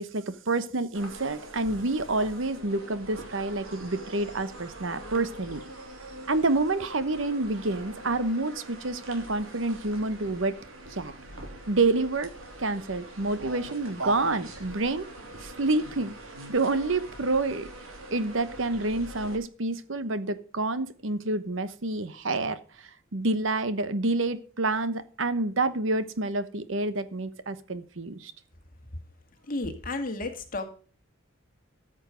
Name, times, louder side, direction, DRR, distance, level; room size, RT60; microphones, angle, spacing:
voice 1, 0.0-5.6 6.3-10.5 10.9-11.1 11.7-12.3 12.6-15.1 15.4-16.1 16.5-17.7 18.1-22.6 23.1-28.3, right 2 dB, 70° right, 13 dB, 1.0 m, -28 dB
sound 1, 0.9-19.4, right 2 dB, 85° right, 3.0 m, -43 dB
voice 2, 29.5-30.7, left 2 dB, 45° left, 5 dB, 2.0 m, -32 dB
13.5 x 7.3 x 5.1 m, 0.40 s
head